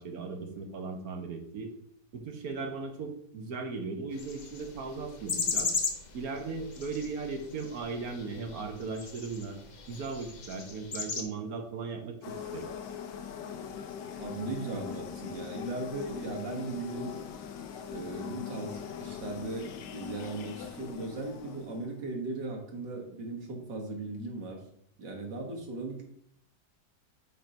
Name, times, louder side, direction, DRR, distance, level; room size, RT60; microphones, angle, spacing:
voice 1, 0.0-1.7 2.1-5.7 6.1-9.6 9.9-12.7, right 4 dB, 60° right, 4 dB, 1.3 m, -37 dB
sound 1, 4.1-11.2, left 4 dB, 55° left, 0.5 m, -37 dB
sound 2, 12.2-22.0, left 8 dB, 85° left, 1.4 m, -41 dB
voice 2, 14.2-17.2 17.9-24.6 25.0-26.0, right 3 dB, 85° right, 1 dB, 2.0 m, -38 dB
5.5 x 4.4 x 5.2 m, 0.70 s
omnidirectional pair, 1.8 m